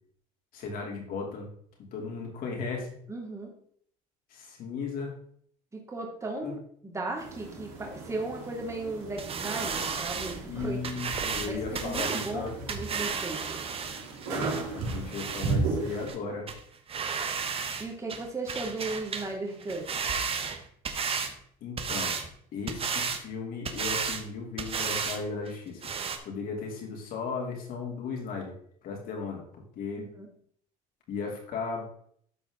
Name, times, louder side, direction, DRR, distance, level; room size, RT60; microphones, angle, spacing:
voice 1, 0.5-1.5 1.9-3.0 4.3-5.1 6.4-6.6 10.5-12.5 14.3-16.5 21.6-22.2 22.5-25.8 26.2-28.5 28.8-30.0 31.1-31.9, left 4 dB, 60° left, 0 dB, 3.1 m, -36 dB
voice 2, 3.1-3.5 5.7-10.9 11.4-13.6 17.8-19.9 30.0-30.3, right 2 dB, 15° right, 0 dB, 2.4 m, -36 dB
sound 1, 7.2-16.1, right 4 dB, 75° right, 3.4 m, -36 dB
sound 2, 9.2-15.6 16.1-16.2 16.5-16.6 16.9-17.8 18.1-19.3 19.6-21.3 21.8-22.3 22.7-23.2 23.6-24.2 24.6-25.2 25.5-25.6 25.8-26.2, right 6 dB, 35° right, 1.2 m, -33 dB
12.5 x 4.5 x 3.8 m, 0.63 s
supercardioid pair, 105°, 17 cm